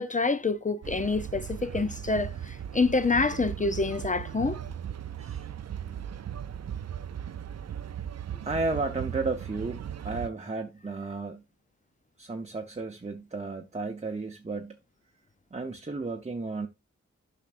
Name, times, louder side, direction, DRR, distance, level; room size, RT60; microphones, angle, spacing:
voice 1, 0.0-4.6, left 3 dB, 25° left, 0.5 m, -27 dB
sound 1, 0.8-10.3, right 9 dB, 60° right, 0.5 m, -37 dB
voice 2, 8.4-11.4 12.2-14.8 15.5-16.7, right 3 dB, 25° right, 0.8 m, -33 dB
10.5 x 5.9 x 2.5 m
wide cardioid pair, 70°, 29 cm